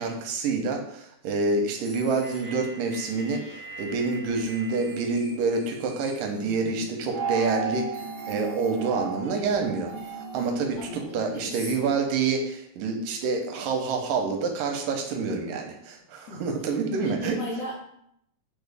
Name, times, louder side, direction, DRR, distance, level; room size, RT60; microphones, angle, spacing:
voice 1, 0.0-17.4, right 4 dB, 85° right, 3 dB, 2.3 m, -28 dB
sound 1, 1.7-6.9 7.5-7.6 7.9-8.8 9.2-10.9 11.6-11.9, right 2 dB, 70° right, 0.9 m, -46 dB
voice 2, 6.4-6.8 10.7-11.9 16.3-16.4 17.0-17.8, left 1 dB, 75° left, -4 dB, 1.4 m, -37 dB
sound 2, 7.1-11.7, right 4 dB, 55° right, 0.4 m, -34 dB
6.0 x 2.0 x 3.3 m, 0.72 s
omnidirectional pair, 3.8 m